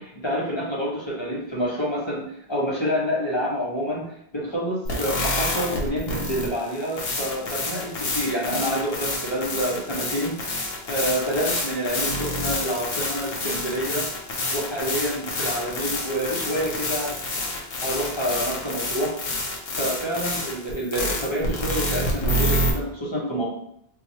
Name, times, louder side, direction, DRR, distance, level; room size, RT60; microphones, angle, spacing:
voice 1, 0.0-14.1 14.5-17.5 17.8-19.1 19.8-23.5, equal, 30° left, -5 dB, 0.9 m, -28 dB
sound 1, 4.9-22.7, left 1 dB, 70° left, 1.0 m, -28 dB
4.4 x 2.3 x 2.8 m, 0.73 s
omnidirectional pair, 1.1 m